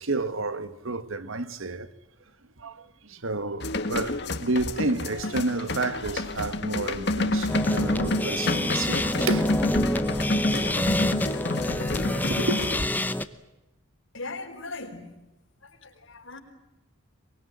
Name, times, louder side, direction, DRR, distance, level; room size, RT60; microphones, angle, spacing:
voice 1, 0.0-1.9 2.6-9.6 10.6-10.7 12.2-12.7, right 2 dB, 75° right, 1.5 m, -31 dB
sound 1, 3.6-12.9, left 2 dB, 55° left, 1.8 m, -29 dB
sound 2, 7.5-13.3, left 1 dB, 10° left, 0.9 m, -27 dB
voice 2, 14.1-15.0 15.6-16.4, left 3 dB, 70° left, 4.9 m, -38 dB
24.0 x 23.5 x 8.9 m
head